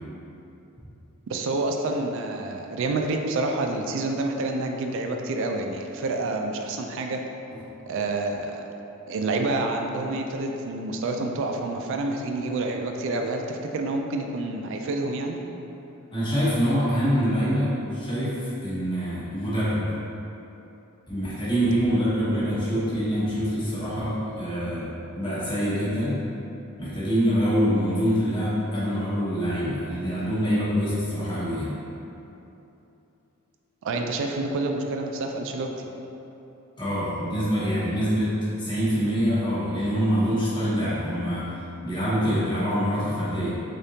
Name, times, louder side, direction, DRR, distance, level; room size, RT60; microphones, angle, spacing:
voice 1, 1.3-7.2 7.9-8.6 9.1-15.4 33.8-35.9, right 2 dB, 60° right, 3 dB, 0.3 m, -28 dB
voice 2, 16.1-19.8 21.1-24.9 25.1-26.2 26.8-31.7 36.8-38.3 38.6-41.5 41.8-43.5, equal, 20° left, -11 dB, 1.0 m, -25 dB
3.7 x 3.5 x 2.7 m, 2.9 s
head